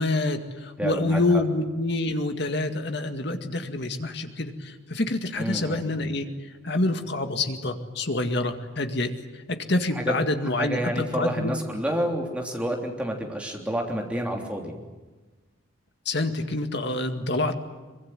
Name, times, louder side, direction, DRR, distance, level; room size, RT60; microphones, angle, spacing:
voice 1, 0.0-6.3 6.6-11.5 16.1-17.5, left 2 dB, 55° left, 6 dB, 2.1 m, -27 dB
voice 2, 0.8-1.4 5.4-5.8 9.9-10.1 10.6-14.7, right 1 dB, 5° right, 1 dB, 3.3 m, -29 dB
24.0 x 23.0 x 9.3 m, 1.2 s
head